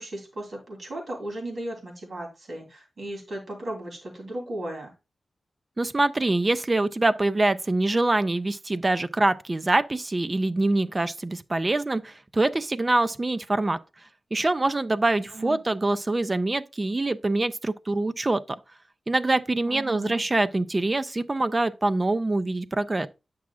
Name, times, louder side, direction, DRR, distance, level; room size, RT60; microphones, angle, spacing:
voice 1, 0.0-4.9 15.3-15.6 19.6-20.2, right 1 dB, 45° right, 3.0 m, -36 dB
voice 2, 5.8-13.8 14.3-18.4 19.1-23.1, right 2 dB, 20° right, 0.4 m, -24 dB
9.4 x 6.1 x 2.3 m
wide cardioid pair, 175°, 0 cm